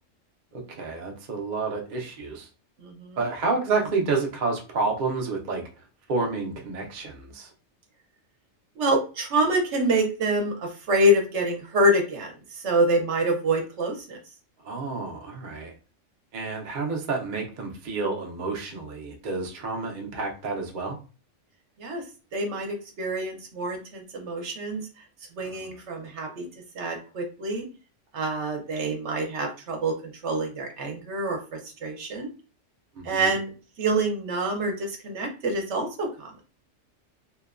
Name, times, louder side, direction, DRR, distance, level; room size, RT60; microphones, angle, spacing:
voice 1, 0.5-2.5 3.2-5.6 6.1-7.5 14.6-15.7 16.3-21.0 25.4-25.7 33.0-33.3, right 3 dB, 50° right, 1 dB, 0.6 m, -29 dB
voice 2, 2.8-3.2 8.8-12.3 12.6-14.2 21.8-22.0 22.3-24.8 25.4-26.4 26.7-27.7 28.1-32.3 33.0-33.5 33.8-36.3, right 1 dB, 70° right, 2 dB, 1.0 m, -26 dB
2.9 x 2.1 x 2.3 m, 0.34 s
omnidirectional pair, 1.3 m